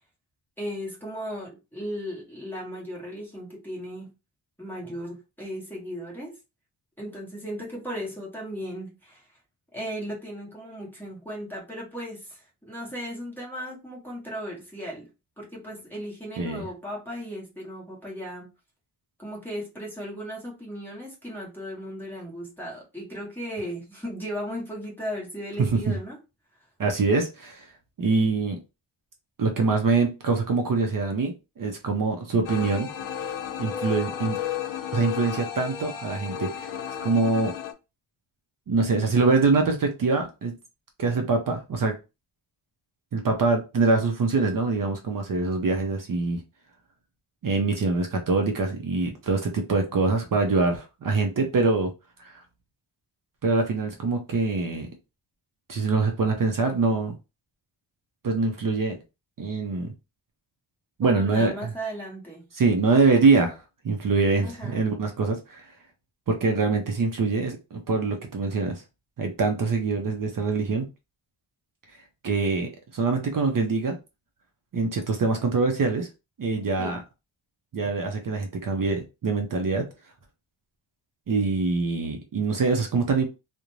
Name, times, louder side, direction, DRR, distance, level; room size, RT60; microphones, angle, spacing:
voice 1, 0.6-4.1 4.6-6.4 7.0-9.3 9.7-15.1 15.4-18.5 19.2-26.2 61.0-62.5 64.4-64.8 76.8-77.0, equal, 5° left, 0.9 m, -36 dB
voice 2, 26.8-27.6 28.0-28.6 29.4-32.9 33.6-34.4 34.9-36.7 37.0-37.6 38.7-40.6 41.0-42.0 43.1-46.4 47.4-51.9 52.2-52.3 53.4-54.9 55.7-57.2 58.2-59.0 59.4-59.9 61.0-61.7 62.5-65.7 66.3-68.8 69.2-70.9 72.2-74.0 74.7-76.1 76.4-77.0 77.7-79.9 81.3-83.2, right 4 dB, 45° right, 0.5 m, -24 dB
sound 1, 32.4-37.7, left 8 dB, 75° left, 0.6 m, -33 dB
2.5 x 2.1 x 3.0 m
wide cardioid pair, 140°, 47 cm